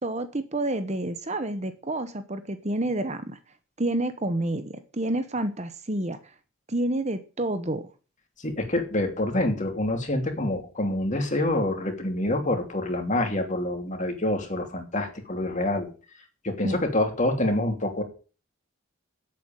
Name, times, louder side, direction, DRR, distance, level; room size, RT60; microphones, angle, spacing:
voice 1, 0.0-3.4 3.8-6.2 6.7-7.9 16.6-16.8, right 1 dB, 30° right, 10 dB, 1.0 m, -29 dB
voice 2, 8.4-15.9 16.4-18.0, left 1 dB, 35° left, 4 dB, 3.0 m, -26 dB
8.6 x 8.0 x 8.9 m, 0.36 s
head